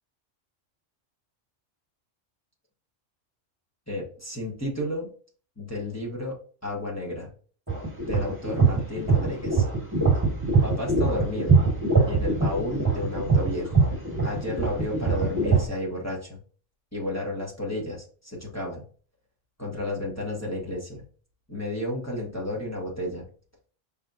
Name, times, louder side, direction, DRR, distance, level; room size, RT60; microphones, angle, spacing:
voice 1, 3.9-5.1 5.6-7.3 8.1-9.7 10.6-11.6 12.1-13.8 14.2-16.4 16.9-18.8 19.6-21.0 21.5-23.2, left 1 dB, 15° left, -3 dB, 1.3 m, -32 dB
sound 1, 7.7-15.6, right 4 dB, 15° right, 1.6 m, -23 dB
5.5 x 3.7 x 2.6 m, 0.41 s
omnidirectional pair, 1.3 m